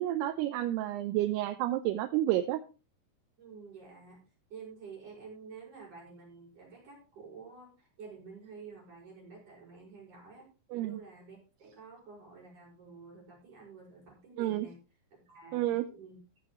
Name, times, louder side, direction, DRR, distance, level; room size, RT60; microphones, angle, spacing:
voice 1, 0.0-2.6 10.7-11.0 14.4-14.7 15.5-15.8, right 14 dB, 80° right, 10 dB, 2.5 m, -30 dB
voice 2, 3.4-4.2 4.5-14.8 15.1-16.2, right 5 dB, 35° right, -2 dB, 6.2 m, -50 dB
15.0 x 10.0 x 3.1 m, 0.32 s
omnidirectional pair, 5.1 m